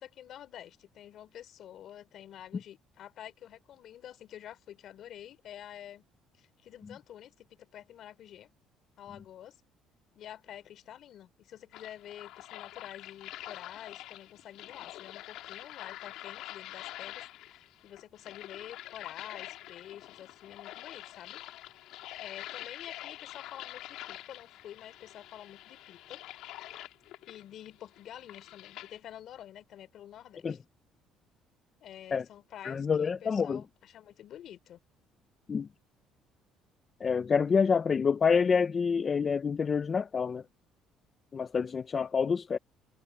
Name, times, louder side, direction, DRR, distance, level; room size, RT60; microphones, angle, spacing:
voice 1, 0.0-6.1 6.4-8.5 9.0-9.6 10.1-21.4 22.2-26.2 27.2-30.6 31.8-34.8, left 11 dB, 60° left, 3.4 m, -48 dB
sound 1, 11.7-29.0, left 15 dB, 75° left, 2.9 m, -46 dB
voice 2, 32.6-33.6 35.5-35.7 37.0-40.4 41.3-42.6, left 6 dB, 35° left, 0.7 m, -27 dB
cardioid pair, 100°, 0 cm